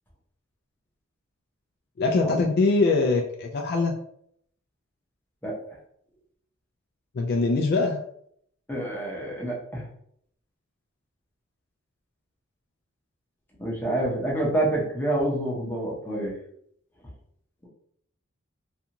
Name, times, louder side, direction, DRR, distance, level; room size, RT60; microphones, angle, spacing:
voice 1, 2.0-3.9 7.1-8.0, left 3 dB, 50° left, 2 dB, 0.3 m, -23 dB
voice 2, 8.7-9.8 13.6-16.4, right 1 dB, 10° left, -3 dB, 0.7 m, -27 dB
2.5 x 2.3 x 2.8 m, 0.68 s
head